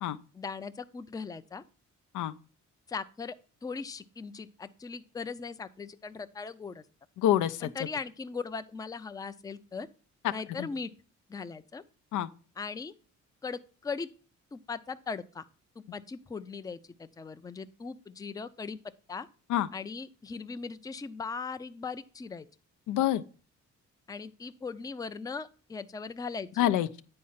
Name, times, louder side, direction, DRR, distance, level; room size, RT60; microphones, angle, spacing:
voice 1, 0.3-1.6 2.9-3.4 3.6-6.8 7.6-9.9 10.3-10.9 11.3-11.8 12.6-12.9 13.4-14.1 14.5-15.4 15.9-18.8 19.1-19.3 19.7-22.5 24.1-26.7, left 5 dB, 10° left, 0.4 m, -39 dB
voice 2, 7.2-7.7 10.2-10.3 10.6-10.7 12.1-12.3 19.5-19.7 22.9-23.2 26.6-27.0, left 12 dB, 85° left, 0.5 m, -26 dB
8.7 x 4.2 x 5.6 m
cardioid pair, 90°, 30 cm